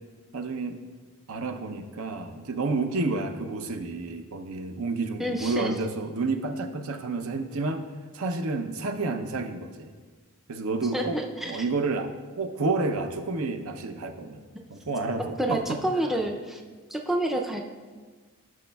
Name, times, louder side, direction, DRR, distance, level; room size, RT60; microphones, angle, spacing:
voice 1, 0.3-0.8 1.3-7.9 8.1-9.9 10.5-12.1 12.4-14.4 14.7-16.3, right 3 dB, 75° right, 7 dB, 0.6 m, -30 dB
voice 2, 5.2-5.7 10.9-11.5 15.4-16.6 16.9-17.6, right 1 dB, ahead, 1 dB, 0.4 m, -28 dB
14.0 x 6.2 x 2.3 m, 1.5 s
head